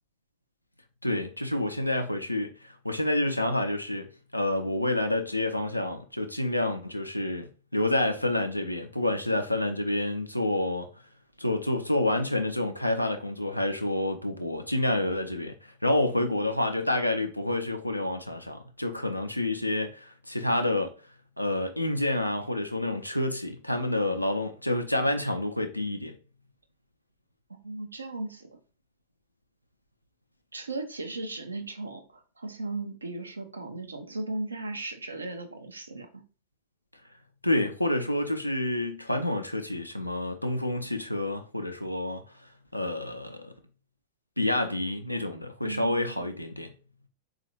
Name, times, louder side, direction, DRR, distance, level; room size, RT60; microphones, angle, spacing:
voice 1, 1.0-4.1 4.3-10.9 11.4-20.9 21.4-26.1 37.4-42.2 42.7-43.5 44.4-46.7, left 1 dB, 90° left, 0.5 m, -28 dB
voice 2, 27.5-28.5 30.5-36.2 45.6-46.3, right 2 dB, 80° right, 0.6 m, -37 dB
4.0 x 2.4 x 2.8 m
figure-of-eight pair, 90°, 0 cm